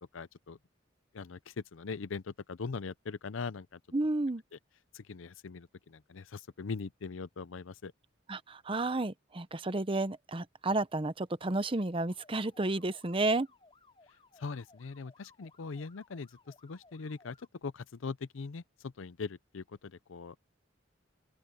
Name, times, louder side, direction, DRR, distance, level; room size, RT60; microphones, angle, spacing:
voice 1, 0.1-0.6 1.1-3.8 4.5-4.6 4.9-7.9 14.4-17.4 17.6-20.4, left 4 dB, 85° left, 0.6 m, -41 dB
voice 2, 3.9-4.4 8.3-13.5, right 2 dB, 25° right, 0.8 m, -31 dB
sound 1, 12.1-17.5, left 3 dB, 30° left, 4.4 m, -62 dB
open air
head